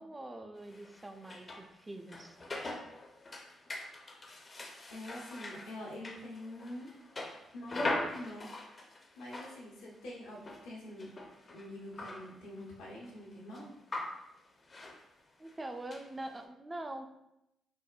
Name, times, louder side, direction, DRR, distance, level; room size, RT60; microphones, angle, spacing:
voice 1, 0.0-2.4 15.4-17.0, right 1 dB, 25° right, 5 dB, 0.5 m, -44 dB
sound 1, 0.7-1.7 2.1-9.6 10.4-12.7 13.0-13.1 13.5-14.3 14.7-15.0 15.4-15.5 15.9-16.4, left 2 dB, 40° left, 0.6 m, -42 dB
voice 2, 4.9-6.9 7.5-8.5 9.2-11.2 11.5-13.7, left 1 dB, 85° left, -5 dB, 0.9 m, -45 dB
4.3 x 2.1 x 2.4 m, 0.82 s
hypercardioid pair, 50°, 0 cm